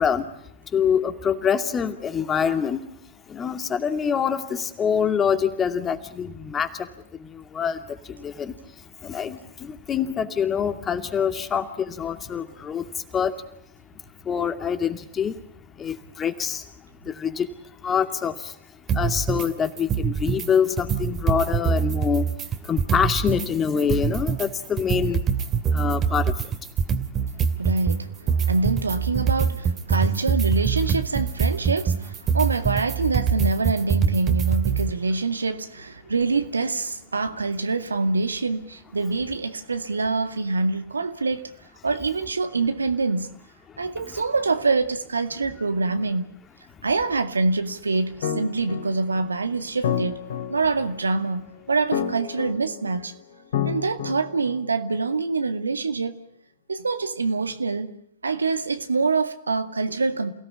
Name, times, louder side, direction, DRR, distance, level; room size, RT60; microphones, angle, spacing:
voice 1, 0.0-2.9 3.3-13.5 14.2-15.4 15.8-25.4 25.7-26.7 43.7-43.8 44.1-44.2 46.7-46.8, left 7 dB, 20° left, 2.4 m, -26 dB
sound 1, 18.9-19.5 19.8-20.5 20.8-23.5 23.8-34.9, right 7 dB, 25° right, 2.5 m, -24 dB
voice 2, 27.6-41.5 41.8-43.4 43.8-46.4 46.8-50.2 50.5-53.1 53.6-56.2 56.7-57.9 58.2-60.3, right 3 dB, 85° right, 2.1 m, -25 dB
sound 2, 48.2-54.9, left 8 dB, 60° left, 3.8 m, -31 dB
28.5 x 17.5 x 9.9 m
figure-of-eight pair, 110°, 0 cm